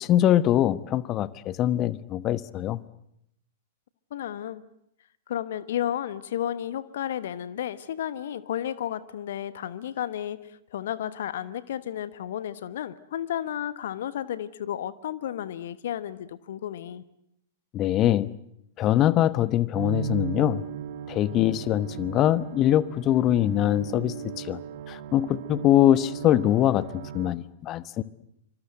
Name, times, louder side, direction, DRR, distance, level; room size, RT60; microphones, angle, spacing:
voice 1, 0.0-2.8 17.7-18.3 18.8-20.6 21.1-24.6 24.9-28.0, left 12 dB, 30° left, 17 dB, 1.1 m, -23 dB
voice 2, 4.1-4.6 5.3-17.0, left 10 dB, 55° left, 16 dB, 1.1 m, -32 dB
sound 1, 19.7-27.3, right 8 dB, 50° right, 1.9 m, -36 dB
26.5 x 25.0 x 8.0 m, 0.75 s
figure-of-eight pair, 100°, 0 cm